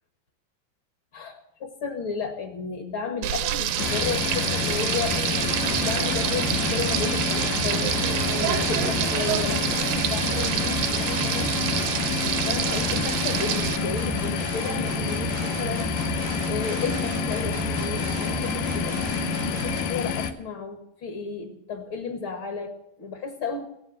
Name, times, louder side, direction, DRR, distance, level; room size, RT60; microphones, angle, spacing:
voice 1, 1.1-8.0 8.4-11.5 12.5-16.0 16.5-19.0 19.5-23.7, left 5 dB, 45° left, 6 dB, 1.9 m, -33 dB
Frying (food), 3.2-13.8, right 11 dB, 75° right, 2.3 m, -27 dB
sound 1, 3.8-20.3, left 7 dB, 75° left, 2.5 m, -28 dB
sound 2, 5.5-19.8, right 8 dB, 90° right, 2.6 m, -34 dB
17.5 x 9.8 x 7.6 m, 0.81 s
omnidirectional pair, 4.1 m